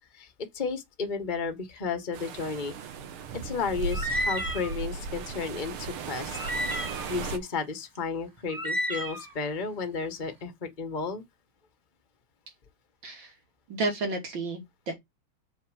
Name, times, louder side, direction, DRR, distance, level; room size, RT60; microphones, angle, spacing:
voice 1, 0.1-2.7 3.4-6.4 7.1-11.2, left 4 dB, 25° left, 1.5 m, -33 dB
sound 1, 2.1-7.4, right 4 dB, 85° right, 2.0 m, -36 dB
sound 2, 3.9-4.8 5.3-5.4 6.3-7.2 7.9-8.0 8.4-9.3, equal, 10° right, 1.1 m, -31 dB
voice 2, 13.7-14.9, right 3 dB, 65° right, 3.7 m, -31 dB
7.4 x 4.8 x 6.4 m
omnidirectional pair, 2.3 m